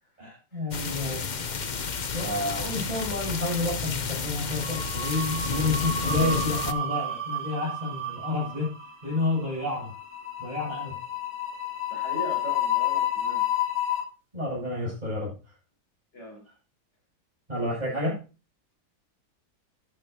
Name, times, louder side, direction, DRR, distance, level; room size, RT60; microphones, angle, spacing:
voice 1, 0.2-1.2 1.5-1.7 2.1-8.7 9.0-9.9 10.4-11.0 14.3-15.3 17.5-18.2, left 2 dB, 20° right, -6 dB, 7.8 m, -30 dB
sound 1, 0.7-6.7, left 5 dB, 80° left, 0.4 m, -31 dB
sound 2, 2.0-2.7 3.0-3.3 4.5-14.0, left 5 dB, 55° right, 5.3 m, -31 dB
voice 2, 11.9-13.5 16.1-16.4, right 1 dB, 35° left, -2 dB, 6.2 m, -39 dB
12.5 x 10.5 x 2.8 m, 0.32 s
omnidirectional pair, 2.0 m